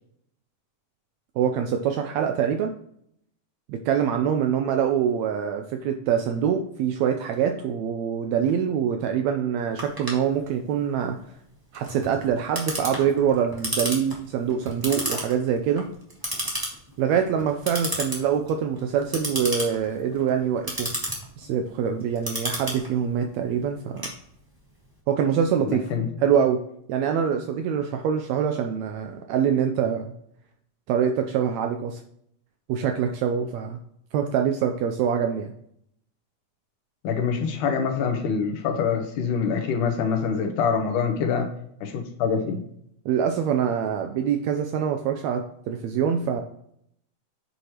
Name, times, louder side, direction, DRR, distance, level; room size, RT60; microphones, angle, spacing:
voice 1, 1.4-2.7 3.7-11.2 11.7-15.9 17.0-20.9 21.4-24.1 25.1-25.9 26.2-26.6 26.9-30.1 30.9-32.0 32.7-33.8 34.1-35.5 43.0-46.4, right 8 dB, 80° right, 5 dB, 1.6 m, -24 dB
Clock, 9.8-24.7, equal, 30° right, 0.4 m, -33 dB
voice 2, 25.6-26.1 37.0-41.5 41.8-42.6, left 6 dB, 85° left, 5 dB, 2.5 m, -25 dB
7.8 x 4.8 x 2.9 m, 0.71 s
omnidirectional pair, 3.6 m